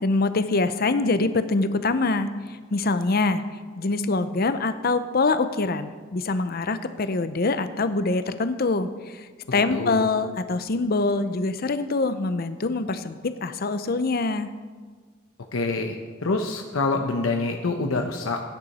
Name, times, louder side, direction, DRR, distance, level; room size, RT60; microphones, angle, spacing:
voice 1, 0.0-3.4 3.8-14.5, left 3 dB, 50° left, 11 dB, 0.6 m, -24 dB
voice 2, 9.5-10.1 15.5-16.0 16.2-18.4, left 3 dB, 80° left, 3 dB, 0.8 m, -26 dB
16.0 x 9.7 x 4.2 m, 1.5 s
head